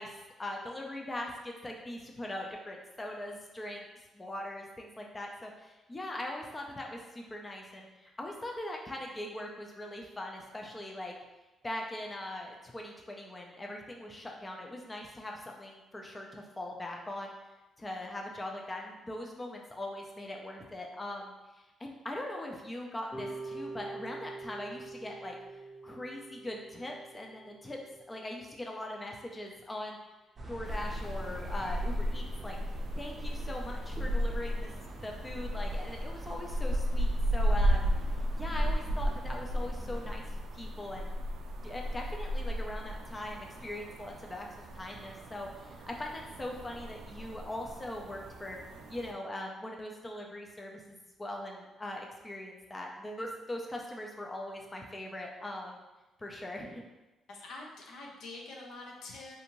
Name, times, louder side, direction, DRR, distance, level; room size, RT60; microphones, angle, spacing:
voice 1, 0.0-3.8 4.1-11.2 11.6-17.3 17.8-21.3 21.8-27.8 28.1-30.0 30.5-32.6 33.0-34.7 35.0-37.9 38.3-41.2 41.6-44.5 44.7-48.6 48.9-50.8 51.2-55.8 56.2-56.8, left 1 dB, 20° left, 0 dB, 0.4 m, -41 dB
sound 1, 23.1-28.2, right 3 dB, 5° left, 0.8 m, -45 dB
sound 2, 30.4-40.1, right 1 dB, 30° right, 0.6 m, -46 dB
sound 3, 30.6-49.1, equal, 75° right, 0.3 m, -34 dB
voice 2, 57.3-59.4, left 2 dB, 80° left, -1 dB, 0.5 m, -45 dB
2.6 x 2.5 x 2.9 m, 1.1 s
cardioid pair, 90°, 0 cm